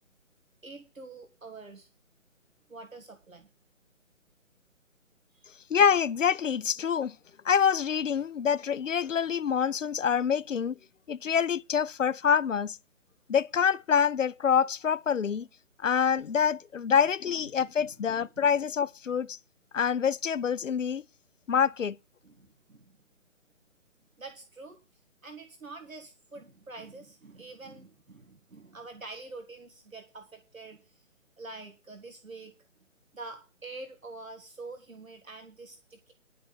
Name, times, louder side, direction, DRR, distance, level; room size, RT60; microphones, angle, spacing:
voice 1, 0.6-1.9 2.7-3.5 5.3-5.5 16.9-17.0 17.8-17.9 22.2-23.0 24.2-24.8 25.2-31.1 31.4-32.5 33.1-36.1, right 3 dB, 80° right, 1.8 m, -46 dB
voice 2, 5.7-7.2 7.4-10.7 11.1-12.8 13.3-15.5 15.8-19.4 19.7-21.0 21.5-22.0, left 7 dB, 70° left, 0.5 m, -26 dB
11.0 x 5.5 x 8.5 m
figure-of-eight pair, 145°, 40 cm